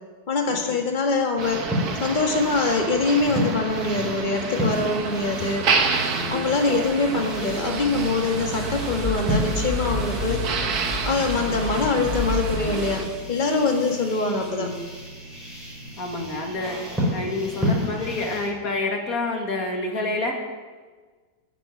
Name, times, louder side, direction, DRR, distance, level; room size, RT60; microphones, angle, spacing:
voice 1, 0.3-1.7 2.0-5.7 6.3-10.4 11.0-14.7, left 3 dB, 30° left, 2 dB, 1.9 m, -24 dB
sound 1, 1.4-18.5, equal, ahead, 5.9 m, -32 dB
Motor vehicle (road), 1.4-13.1, right 5 dB, 70° right, 1.7 m, -29 dB
voice 2, 6.1-6.6 11.3-11.6 14.5-14.7 16.0-20.4, left 2 dB, 60° left, 1 dB, 2.7 m, -29 dB
sound 2, 7.0-12.8, left 2 dB, 80° left, 3.0 m, -31 dB
14.5 x 7.7 x 9.8 m, 1.4 s
omnidirectional pair, 1.7 m